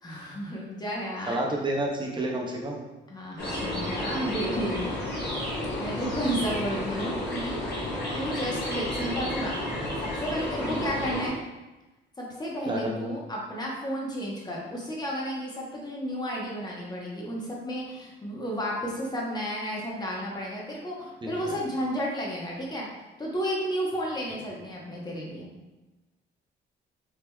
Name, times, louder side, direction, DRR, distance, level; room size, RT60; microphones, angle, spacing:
voice 1, 0.0-1.4 3.1-5.3 5.8-7.6 8.1-9.7 10.0-11.4 12.2-22.9 23.2-25.5, equal, 20° left, -3 dB, 0.9 m, -32 dB
voice 2, 1.3-2.8 10.6-10.9 12.7-13.1 21.2-21.6, right 1 dB, 25° right, -1 dB, 0.7 m, -30 dB
sound 1, 3.4-11.3, left 1 dB, 55° left, 1.1 m, -32 dB
3.5 x 2.8 x 2.2 m, 1.1 s
cardioid pair, 90°, 20 cm